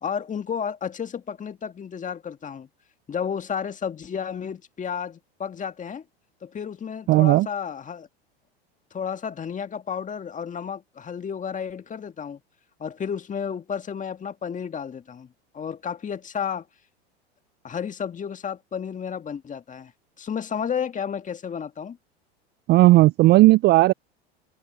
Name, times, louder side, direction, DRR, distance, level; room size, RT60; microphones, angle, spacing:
voice 1, 0.0-2.7 3.1-6.0 6.4-8.1 8.9-12.4 12.8-15.3 15.5-16.7 17.6-19.9 20.2-22.0, left 7 dB, 25° left, 1.9 m, -32 dB
voice 2, 7.1-7.5 22.7-23.9, right 18 dB, 35° right, 0.4 m, -15 dB
open air
hypercardioid pair, 90°, 32 cm